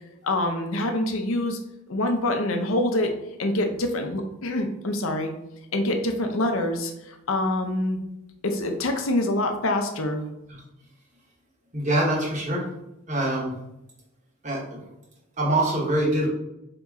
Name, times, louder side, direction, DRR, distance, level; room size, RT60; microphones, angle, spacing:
voice 1, 0.2-1.6 1.9-3.1 3.4-5.3 5.7-8.0 8.4-10.2, left 1 dB, 70° left, 4 dB, 0.6 m, -25 dB
voice 2, 11.7-12.6 13.1-13.5 14.4-14.8 15.4-16.3, right 1 dB, 35° right, -3 dB, 1.1 m, -24 dB
4.2 x 2.9 x 3.5 m, 0.88 s
head